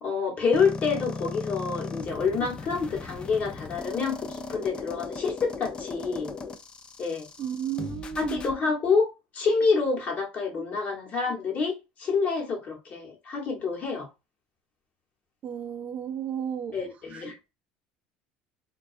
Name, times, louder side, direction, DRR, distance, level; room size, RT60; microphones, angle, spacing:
voice 1, 0.0-6.3 7.0-7.3 8.2-14.1 16.7-17.5, left 5 dB, 45° left, 1.0 m, -27 dB
sound 1, 0.5-8.5, left 4 dB, 25° left, 0.4 m, -38 dB
voice 2, 7.4-8.4 15.4-16.7 17.1-17.2, right 9 dB, 40° right, 0.4 m, -33 dB
2.2 x 2.2 x 2.4 m
supercardioid pair, 110°, 4 cm